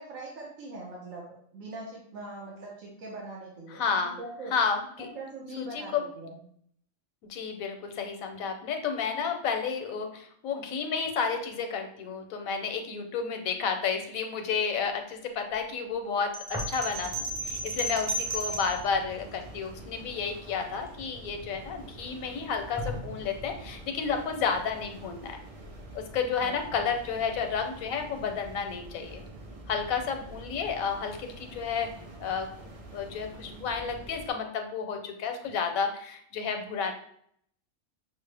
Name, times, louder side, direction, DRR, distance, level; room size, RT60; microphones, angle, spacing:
voice 1, 0.0-3.9 4.2-4.5 5.0-6.4 26.4-26.5, right 2 dB, 75° right, -4 dB, 1.2 m, -41 dB
voice 2, 3.7-4.2 4.5-5.1 5.6-6.0 7.3-25.4 25.9-29.2 29.7-31.9 32.2-32.5 32.9-36.9, left 6 dB, 85° left, 6 dB, 1.1 m, -31 dB
sound 1, 16.3-18.8, right 1 dB, 40° right, 0.8 m, -33 dB
sound 2, 16.5-17.3 17.6-21.6 22.1-22.2 22.8-23.6, left 2 dB, 5° right, 0.5 m, -42 dB
sound 3, 16.9-34.3, right 1 dB, 55° right, 0.3 m, -46 dB
6.0 x 2.1 x 3.3 m, 0.67 s
omnidirectional pair, 1.4 m